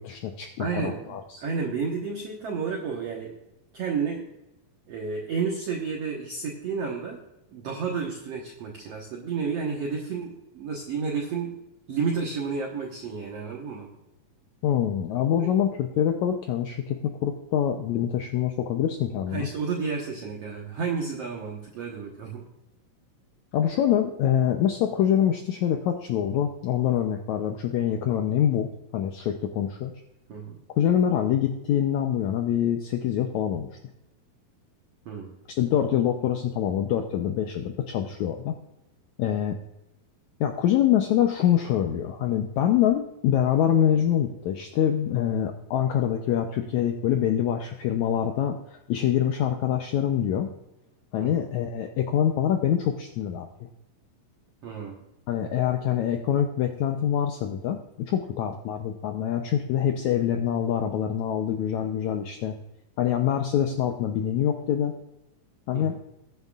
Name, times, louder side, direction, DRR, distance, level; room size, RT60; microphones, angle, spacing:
voice 1, 0.0-1.4 14.6-19.5 23.5-28.7 28.9-29.9 30.8-33.7 35.6-38.5 39.2-39.6 40.4-50.5 51.1-53.7 55.3-62.5 63.0-64.9 65.7-66.0, left 10 dB, 80° left, 4 dB, 1.7 m, -25 dB
voice 2, 0.6-3.3 3.7-4.2 4.9-7.2 7.5-11.6 11.9-13.9 15.4-15.5 19.3-22.4 30.3-30.6 35.1-35.3 51.2-51.3 54.6-55.0 65.7-65.9, right 5 dB, 60° right, -1 dB, 1.9 m, -31 dB
20.5 x 9.3 x 2.4 m, 0.92 s
omnidirectional pair, 4.1 m